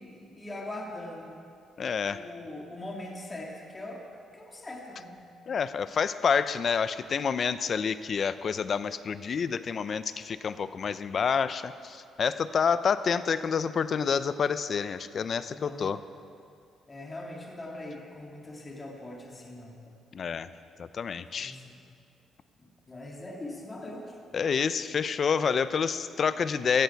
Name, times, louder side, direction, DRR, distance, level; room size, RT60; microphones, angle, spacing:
voice 1, 0.0-1.3 2.0-4.1 4.3-5.1 15.5-15.9 16.9-19.8 21.4-21.8 22.6-24.2, left 1 dB, 25° left, -1 dB, 2.7 m, -41 dB
voice 2, 1.8-2.2 5.5-16.0 20.1-20.5 20.8-21.6 24.3-26.8, left 6 dB, 50° left, 13 dB, 0.6 m, -28 dB
16.5 x 13.5 x 4.7 m, 2.4 s
cardioid pair, 90°, 0 cm